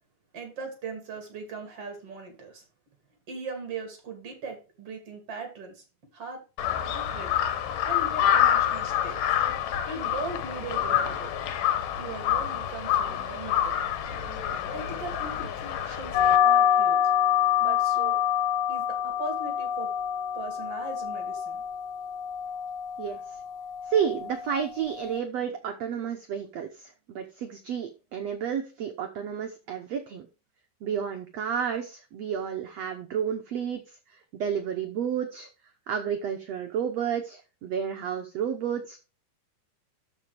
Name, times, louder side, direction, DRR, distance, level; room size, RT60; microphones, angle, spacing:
voice 1, 0.3-2.6 3.3-5.8 6.1-6.4 6.8-7.3 7.8-9.2 9.9-11.3 12.0-13.8 14.5-17.0 17.6-18.2 18.7-19.9 20.3-21.6, right 4 dB, 40° right, 4 dB, 3.3 m, -39 dB
Crow, 6.6-16.4, left 10 dB, 70° left, 2.5 m, -27 dB
sound 1, 16.1-25.2, left 9 dB, 90° left, 2.6 m, -26 dB
voice 2, 23.9-30.3 30.8-33.8 34.1-35.5 35.9-39.0, right 8 dB, 85° right, 5 dB, 1.4 m, -31 dB
13.0 x 5.2 x 3.4 m, 0.32 s
omnidirectional pair, 4.3 m